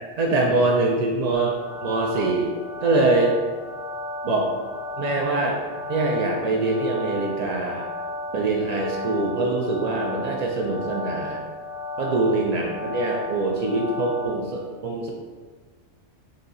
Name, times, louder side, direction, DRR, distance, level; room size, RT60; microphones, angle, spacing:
voice 1, 0.2-2.5 2.8-3.3 4.2-4.5 5.0-5.6 5.9-7.9 8.3-11.4 12.0-15.1, right 2 dB, 85° right, 0 dB, 0.3 m, -23 dB
sound 1, 1.3-14.3, left 2 dB, 65° right, 1.2 m, -34 dB
4.3 x 2.7 x 3.9 m, 1.5 s
omnidirectional pair, 1.3 m